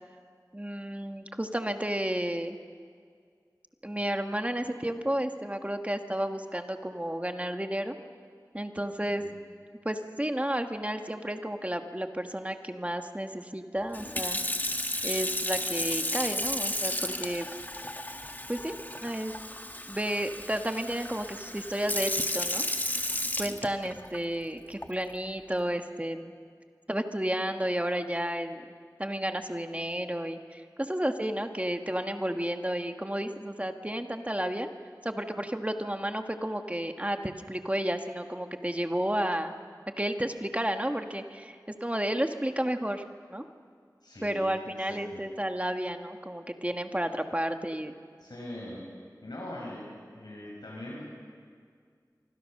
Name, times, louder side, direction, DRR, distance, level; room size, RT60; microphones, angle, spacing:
voice 1, 0.5-2.6 3.8-8.0 8.5-9.3 9.8-14.4 15.0-17.5 18.5-19.3 19.9-22.6 23.4-26.3 26.9-28.7 29.0-34.7 35.0-39.5 40.0-43.0 43.3-43.4 44.2-47.9, right 1 dB, 20° right, 6 dB, 1.6 m, -32 dB
Sink (filling or washing) / Fill (with liquid), 13.9-24.2 24.8-25.1, left 1 dB, 25° left, 1.6 m, -33 dB
voice 2, 44.0-45.2 48.2-48.8 49.2-51.0, left 1 dB, 85° left, -4 dB, 6.5 m, -42 dB
27.0 x 25.0 x 6.6 m, 2.1 s
wide cardioid pair, 45°, 7 cm